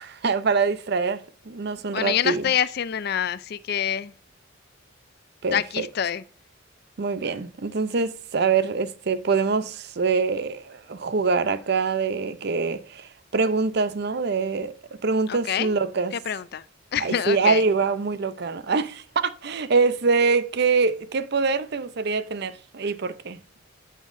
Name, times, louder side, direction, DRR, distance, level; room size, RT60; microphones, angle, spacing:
voice 1, 0.0-2.5 5.4-5.9 7.0-14.7 15.0-16.2 17.0-23.4, right 4 dB, 55° right, 0.6 m, -24 dB
voice 2, 1.9-4.1 5.5-6.2 15.3-15.7 16.1-16.6 16.9-17.6, left 9 dB, 55° left, 0.4 m, -26 dB
8.3 x 7.4 x 2.6 m
head